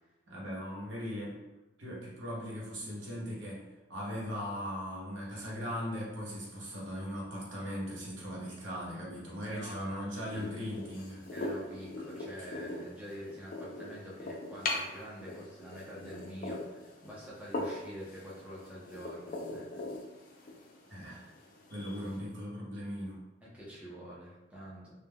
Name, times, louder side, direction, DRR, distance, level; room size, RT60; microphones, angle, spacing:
voice 1, 0.3-1.3 1.8-3.6 3.9-11.3 20.9-21.2 21.7-23.2, equal, 80° right, -5 dB, 0.9 m, -39 dB
voice 2, 9.4-10.5 11.3-19.8 23.4-24.9, equal, 5° right, -7 dB, 0.5 m, -47 dB
sound 1, 10.3-22.2, left 2 dB, 45° left, 0.4 m, -41 dB
2.2 x 2.2 x 3.4 m, 1.0 s
head